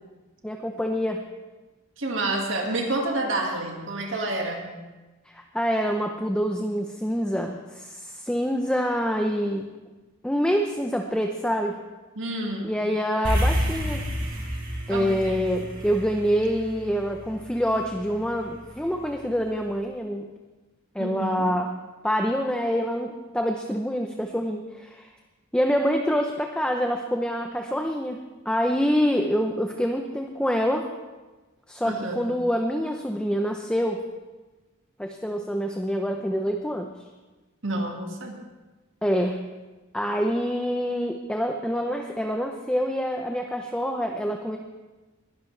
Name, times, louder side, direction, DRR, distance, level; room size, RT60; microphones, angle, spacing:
voice 1, 0.4-1.2 5.3-9.7 10.2-11.8 12.6-14.0 14.9-20.3 20.9-21.7 22.0-25.1 25.5-30.9 31.7-34.0 35.0-36.9 39.0-39.4 39.9-44.6, equal, 5° left, 3 dB, 0.7 m, -26 dB
voice 2, 2.0-4.7 12.2-12.7 14.9-15.5 21.0-21.5 31.8-32.2 37.6-38.4, right 2 dB, 65° right, 1 dB, 2.0 m, -29 dB
sound 1, 13.2-17.8, equal, 45° right, 4.6 m, -28 dB
21.0 x 12.0 x 3.3 m, 1.2 s
head